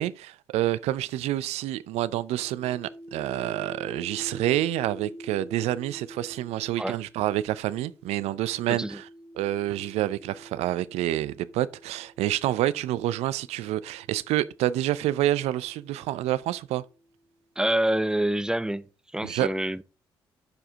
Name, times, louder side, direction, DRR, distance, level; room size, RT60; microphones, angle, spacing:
voice 1, 0.0-9.1 9.4-16.8 19.2-19.5, right 14 dB, 70° right, 0.5 m, -28 dB
sound 1, 2.1-12.5 13.4-17.1, equal, 60° left, 2.0 m, -47 dB
voice 2, 8.7-9.0 17.6-18.9 19.1-19.8, right 1 dB, 5° right, 0.6 m, -26 dB
12.0 x 4.9 x 3.6 m
hypercardioid pair, 50°, 11 cm